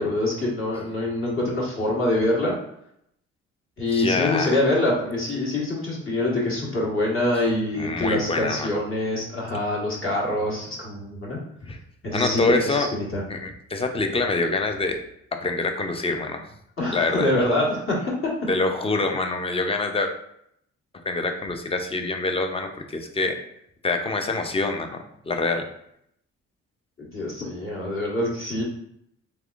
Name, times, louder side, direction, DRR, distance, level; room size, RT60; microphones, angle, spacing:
voice 1, 0.0-2.5 3.8-11.4 12.0-13.2 16.8-17.9 27.0-28.6, left 1 dB, 45° left, -4 dB, 1.4 m, -25 dB
voice 2, 3.9-4.6 7.3-7.4 7.7-8.7 11.6-11.8 12.1-12.9 13.3-15.0 15.4-16.5 16.9-17.3 18.5-20.1 21.0-23.4 23.8-25.7, left 3 dB, 20° left, 5 dB, 0.5 m, -25 dB
3.4 x 3.3 x 2.4 m, 0.73 s
cardioid pair, 90°, 30 cm